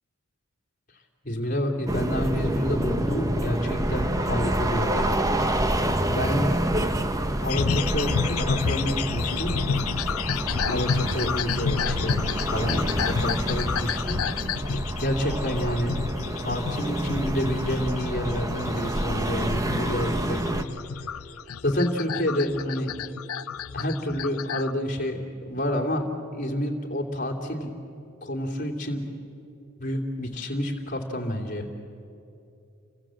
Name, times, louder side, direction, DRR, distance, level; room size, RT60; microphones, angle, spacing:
voice 1, 1.2-5.3 6.1-6.6 7.4-9.5 10.7-14.2 14.7-16.0 16.4-20.7 21.0-21.1 21.6-22.9 23.7-26.1 26.3-27.7 28.2-29.1 29.8-31.7, equal, 40° left, 1 dB, 2.9 m, -29 dB
sound 1, 1.9-20.6, right 1 dB, 15° right, 1.1 m, -28 dB
sound 2, 7.5-24.7, left 7 dB, 85° left, 0.6 m, -30 dB
30.0 x 25.0 x 7.7 m, 2.7 s
head